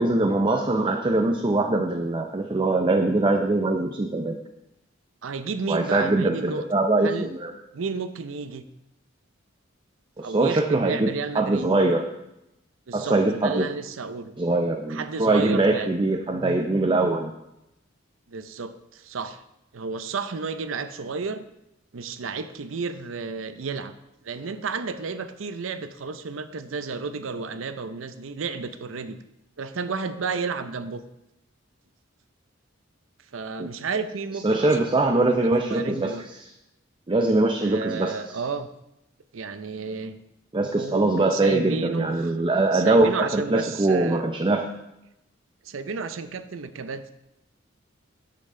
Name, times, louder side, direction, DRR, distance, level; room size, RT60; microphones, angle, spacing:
voice 1, 0.0-4.4 5.7-7.5 10.2-12.0 12.9-13.7 14.4-17.3 33.6-33.7 34.4-36.1 37.1-38.1 40.5-44.7, right 2 dB, 25° right, 4 dB, 0.5 m, -22 dB
voice 2, 5.2-6.7 7.0-7.3 7.7-8.6 10.2-11.7 12.9-14.3 14.9-15.9 18.3-19.4 19.7-21.4 21.9-23.9 24.2-29.2 29.6-31.0 33.3-34.8 35.7-36.2 37.6-38.7 39.3-40.2 40.8-42.3 42.7-44.2 45.6-47.0, right 4 dB, 80° right, 11 dB, 0.6 m, -32 dB
9.8 x 7.6 x 3.7 m, 0.88 s
head